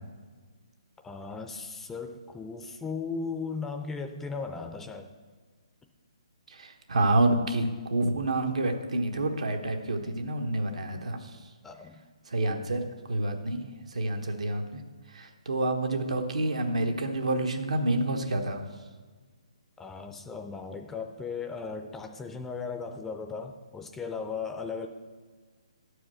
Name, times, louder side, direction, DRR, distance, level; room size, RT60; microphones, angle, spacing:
voice 1, 1.0-5.1 11.6-12.0 19.8-24.9, left 5 dB, 10° left, 6 dB, 0.4 m, -37 dB
voice 2, 6.5-11.2 12.3-12.8 13.1-13.6 13.9-14.6 15.1-18.6, right 2 dB, 80° right, 4 dB, 1.2 m, -28 dB
11.0 x 4.9 x 6.2 m, 1.4 s
hypercardioid pair, 155°, 3 cm